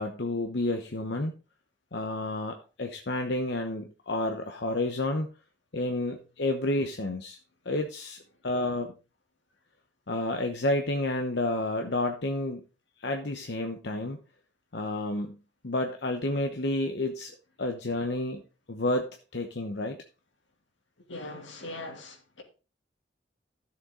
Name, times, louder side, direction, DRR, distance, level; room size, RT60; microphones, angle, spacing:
voice 1, 0.0-1.3 1.9-5.3 5.7-7.4 7.6-8.9 10.1-12.6 13.0-14.2 14.7-15.4 15.6-17.3 17.6-18.4 18.7-20.0, left 2 dB, 65° left, 1.0 m, -30 dB
voice 2, 21.1-22.4, left 2 dB, 85° left, 2.7 m, -40 dB
13.0 x 7.1 x 3.8 m
head